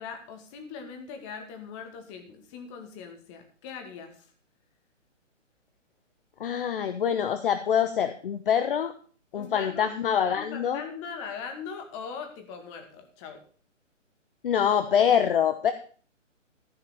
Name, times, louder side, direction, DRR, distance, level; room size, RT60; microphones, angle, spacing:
voice 1, 0.0-4.3 9.3-9.9 10.3-13.4, left 6 dB, 25° left, 6 dB, 2.1 m, -40 dB
voice 2, 6.4-8.9 9.3-10.8 14.4-15.7, left 8 dB, 45° left, 10 dB, 0.9 m, -25 dB
14.5 x 5.6 x 6.9 m, 0.41 s
hypercardioid pair, 145°, 38 cm